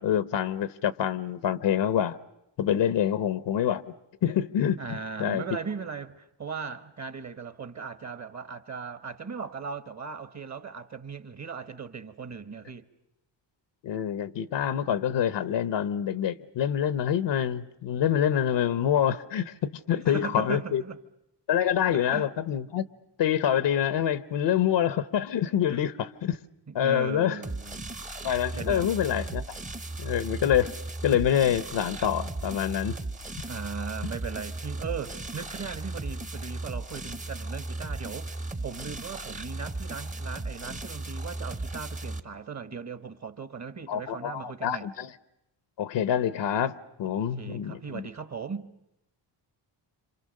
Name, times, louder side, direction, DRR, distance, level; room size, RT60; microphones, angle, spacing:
voice 1, 0.0-2.2 2.6-3.8 4.2-5.4 13.8-20.8 21.5-22.8 23.2-26.4 26.7-27.4 28.2-29.4 30.0-30.7 31.0-33.0 43.9-45.1 45.8-46.7 47.0-48.1, left 9 dB, 70° left, 0.9 m, -26 dB
voice 2, 4.8-12.9 19.9-21.0 21.9-22.3 25.7-25.8 26.7-27.9 28.6-28.9 33.5-44.9 47.0-48.7, right 6 dB, 35° right, 1.3 m, -38 dB
sound 1, 27.4-42.2, right 2 dB, 15° right, 0.9 m, -36 dB
27.0 x 26.0 x 6.5 m
cardioid pair, 85°, 45 cm